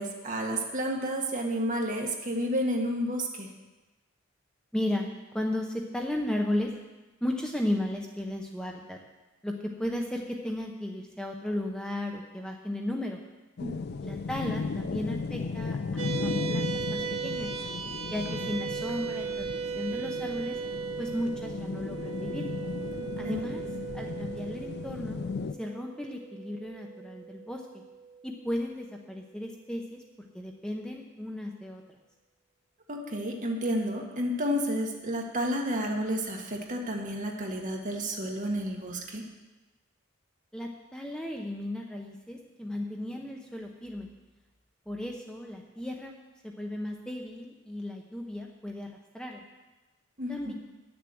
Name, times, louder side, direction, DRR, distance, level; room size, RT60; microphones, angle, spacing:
voice 1, 0.0-3.5 13.6-13.8 23.0-23.4 32.9-39.2 50.2-50.5, equal, 40° right, 1 dB, 1.6 m, -31 dB
voice 2, 4.7-6.7 7.2-9.0 9.4-13.2 14.0-17.5 18.1-19.5 19.7-20.6 21.0-22.4 23.2-23.6 23.9-25.2 25.6-27.8 28.2-31.8 40.5-44.1 44.9-46.1 46.4-49.4 50.3-50.5, left 1 dB, 5° left, 1 dB, 0.8 m, -35 dB
sound 1, 13.6-25.5, left 4 dB, 55° left, 0.4 m, -36 dB
sound 2, 16.0-28.6, right 6 dB, 75° right, 1.1 m, -37 dB
10.5 x 7.0 x 7.8 m, 1.1 s
head